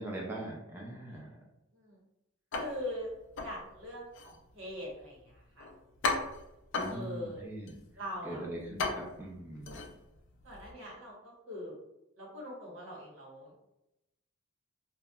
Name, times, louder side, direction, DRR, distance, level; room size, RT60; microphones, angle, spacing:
voice 1, 0.0-1.4 6.8-7.8 8.2-9.8, right 1 dB, 10° right, -3 dB, 0.4 m, -41 dB
sound 1, 2.5-10.7, left 3 dB, 60° left, 0.4 m, -39 dB
voice 2, 2.5-3.1 3.4-5.7 6.9-7.4 8.0-8.4 10.4-11.7 12.2-13.6, equal, 75° right, -4 dB, 0.9 m, -42 dB
2.7 x 2.1 x 2.2 m, 0.89 s
head